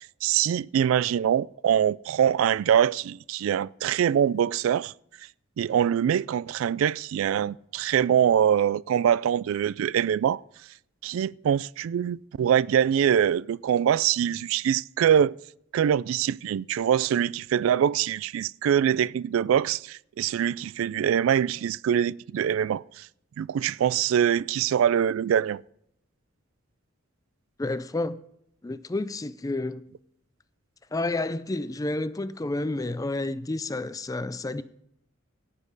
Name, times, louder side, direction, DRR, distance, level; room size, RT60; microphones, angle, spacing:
voice 1, 0.2-4.9 5.6-10.4 11.0-15.4 15.7-23.1 23.4-25.6, right 9 dB, 85° right, 0.3 m, -24 dB
voice 2, 27.6-28.2 28.6-29.8 30.9-34.6, left 2 dB, 15° left, 0.4 m, -30 dB
18.0 x 7.5 x 3.9 m
head